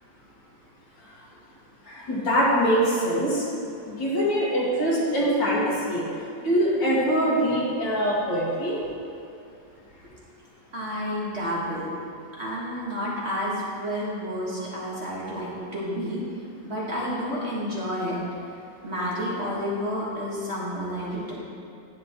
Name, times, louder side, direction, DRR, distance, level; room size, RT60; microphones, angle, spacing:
voice 1, 1.8-3.5 3.9-6.1 6.4-8.8, equal, 75° left, -6 dB, 2.5 m, -23 dB
voice 2, 10.7-11.9 12.4-16.2 16.6-18.2 18.8-21.3, equal, 35° right, -6 dB, 1.8 m, -30 dB
10.5 x 8.7 x 3.0 m, 2.6 s
omnidirectional pair, 2.0 m